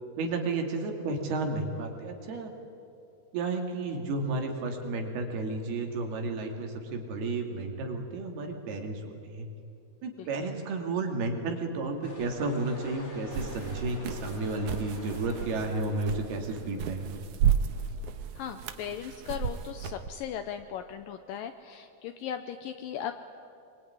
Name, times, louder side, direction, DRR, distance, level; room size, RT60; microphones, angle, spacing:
voice 1, 0.2-2.5 3.3-9.5 10.0-17.1, right 3 dB, 85° right, 3 dB, 4.5 m, -32 dB
sound 1, 12.0-17.1, left 1 dB, 25° left, 2.4 m, -47 dB
sound 2, 13.3-20.1, right 9 dB, 65° right, 2.1 m, -33 dB
voice 2, 18.4-23.1, left 9 dB, 75° left, 8 dB, 2.3 m, -37 dB
24.5 x 23.0 x 9.7 m, 2.6 s
omnidirectional pair, 4.4 m